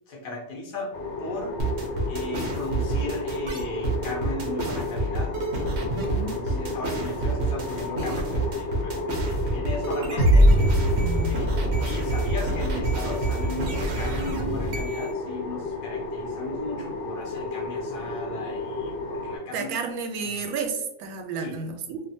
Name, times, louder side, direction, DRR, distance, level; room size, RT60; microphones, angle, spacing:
voice 1, 0.1-1.6 2.1-5.4 6.0-10.5 11.1-19.7 20.2-20.4 21.4-21.5, left 1 dB, 50° left, -2 dB, 0.9 m, -37 dB
sound 1, 0.9-19.4, left 2 dB, 70° left, 0.5 m, -33 dB
sound 2, 1.6-15.1, right 3 dB, 65° right, 0.7 m, -28 dB
voice 2, 5.9-6.6 11.0-11.4 19.5-22.0, right 4 dB, 90° right, 4 dB, 1.1 m, -32 dB
sound 3, 10.2-13.5, equal, 85° left, 1.1 m, -22 dB
2.5 x 2.4 x 2.6 m, 0.84 s
omnidirectional pair, 1.5 m